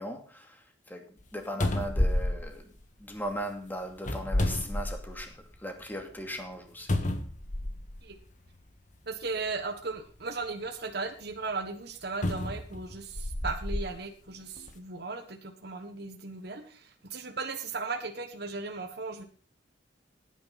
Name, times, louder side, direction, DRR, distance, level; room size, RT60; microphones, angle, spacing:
voice 1, 0.0-2.7 3.0-5.3 5.6-6.9, equal, 10° left, 2.5 m, -38 dB
sound 1, 1.2-1.3 1.6-3.3 4.0-5.4 5.8-5.9 6.9-8.0 8.9-9.1 12.2-13.9 14.6-14.7, left 1 dB, 45° left, 1.7 m, -30 dB
voice 2, 9.1-19.2, right 3 dB, 60° right, 1.3 m, -36 dB
16.5 x 9.9 x 4.1 m
head